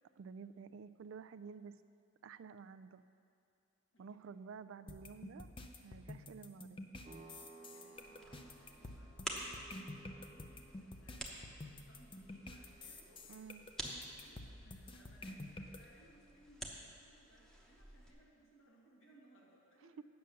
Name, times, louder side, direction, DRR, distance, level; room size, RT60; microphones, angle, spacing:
voice 1, 0.2-1.8 2.2-3.0 4.0-5.5 5.8-6.8 13.3-13.7 20.0-20.1, right 5 dB, 75° right, 14 dB, 0.3 m, -51 dB
sound 1, 4.9-15.8, left 2 dB, 25° left, 0.6 m, -50 dB
sound 2, 7.0-15.4, right 3 dB, 35° right, 0.9 m, -61 dB
voice 2, 7.5-13.4 13.9-20.0, right 1 dB, 75° left, -3 dB, 2.1 m, -66 dB
sound 3, 7.9-18.1, right 1 dB, 5° left, 0.9 m, -50 dB
8.9 x 6.7 x 6.7 m, 2.5 s
head